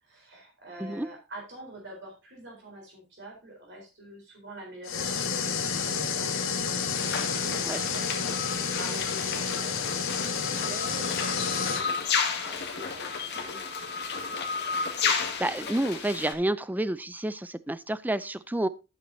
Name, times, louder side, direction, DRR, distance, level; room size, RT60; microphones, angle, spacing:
voice 1, 0.0-6.3 6.6-12.2 12.4-13.9, right 1 dB, 60° right, 0 dB, 3.9 m, -46 dB
sound 1, 4.8-11.8, left 6 dB, 70° left, 1.7 m, -30 dB
sound 2, 6.9-16.3, left 5 dB, 55° left, 2.0 m, -32 dB
voice 2, 15.4-18.7, right 1 dB, 10° right, 15 dB, 0.4 m, -29 dB
12.5 x 8.7 x 2.7 m, 0.29 s
head